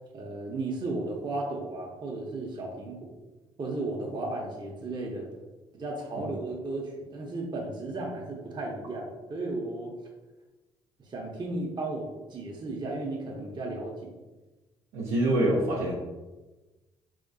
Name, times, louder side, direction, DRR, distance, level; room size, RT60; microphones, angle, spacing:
voice 1, 0.1-3.1 3.6-5.3 5.7-9.9 11.1-14.1, right 2 dB, 35° right, -1 dB, 0.7 m, -34 dB
voice 2, 14.9-15.9, right 1 dB, 80° right, -6 dB, 0.6 m, -25 dB
3.1 x 2.8 x 2.6 m, 1.2 s
hypercardioid pair, 55°, 13 cm